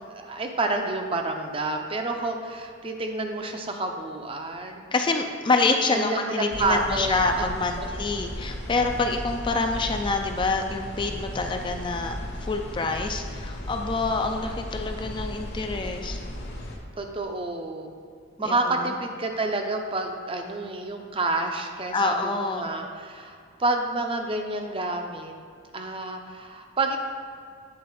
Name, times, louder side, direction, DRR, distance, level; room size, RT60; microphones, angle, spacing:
voice 1, 0.1-4.8 5.9-7.9 17.0-17.9 18.4-25.4 25.7-27.0, right 2 dB, 30° right, 4 dB, 0.6 m, -29 dB
voice 2, 4.9-16.2 18.4-18.9 21.9-22.7, left 3 dB, 25° left, 4 dB, 0.4 m, -27 dB
sound 1, 6.5-16.8, left 1 dB, 60° left, 1.1 m, -35 dB
8.5 x 3.9 x 4.7 m, 2.2 s
head